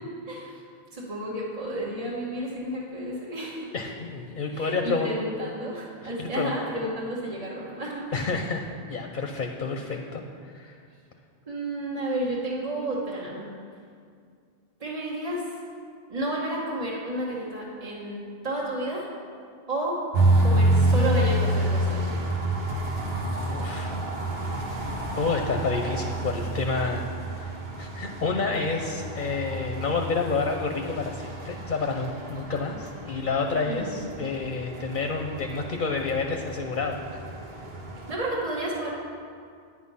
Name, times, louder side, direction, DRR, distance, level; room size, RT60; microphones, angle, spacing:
voice 1, 0.3-0.6 0.9-3.7 4.5-8.2 11.5-13.5 14.8-15.6 16.1-19.1 19.7-20.0 20.4-22.3 33.6-34.0 38.1-38.9, right 1 dB, 35° right, -6 dB, 1.4 m, -31 dB
voice 2, 3.7-5.1 6.0-6.5 8.1-10.8 22.6-22.7 23.5-24.0 25.1-27.1 27.4-27.5 27.8-37.2, left 4 dB, 55° left, 3 dB, 0.9 m, -29 dB
sound 1, 20.1-38.1, right 1 dB, 75° right, 1.5 m, -28 dB
9.8 x 8.6 x 5.5 m, 2.2 s
omnidirectional pair, 1.0 m